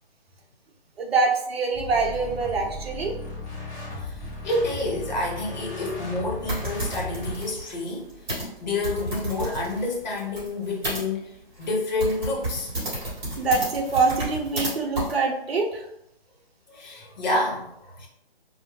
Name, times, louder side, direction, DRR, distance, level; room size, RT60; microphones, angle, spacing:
voice 1, 1.0-3.2 13.4-15.9, right 4 dB, 85° right, 0 dB, 0.6 m, -24 dB
sound 1, 1.7-7.4, left 2 dB, 15° left, 0.8 m, -36 dB
voice 2, 4.0-8.1 8.6-12.7 16.7-18.1, left 2 dB, 45° left, -1 dB, 0.9 m, -29 dB
sound 2, 6.5-11.0 11.6-11.7 12.0-14.7 14.9-15.1, right 1 dB, 25° right, 1.1 m, -32 dB
2.4 x 2.1 x 3.1 m, 0.80 s
hypercardioid pair, 150°, 30 cm